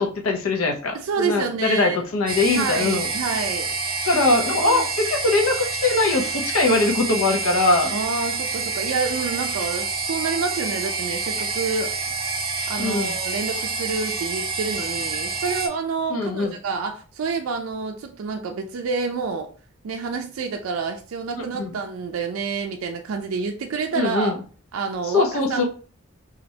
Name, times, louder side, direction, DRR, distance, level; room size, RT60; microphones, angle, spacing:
voice 1, 0.0-3.1 4.1-7.9 12.8-13.1 16.1-16.5 21.5-21.7 24.0-24.3 25.1-25.6, left 3 dB, 85° left, 2 dB, 0.6 m, -21 dB
voice 2, 0.9-2.0 2.5-3.7 4.6-4.9 7.9-11.9 12.7-19.5 19.8-24.3 24.7-25.6, right 5 dB, 75° right, 3 dB, 0.4 m, -28 dB
sound 1, 2.3-15.7, right 4 dB, 25° right, 0.6 m, -28 dB
3.1 x 2.4 x 2.7 m, 0.40 s
head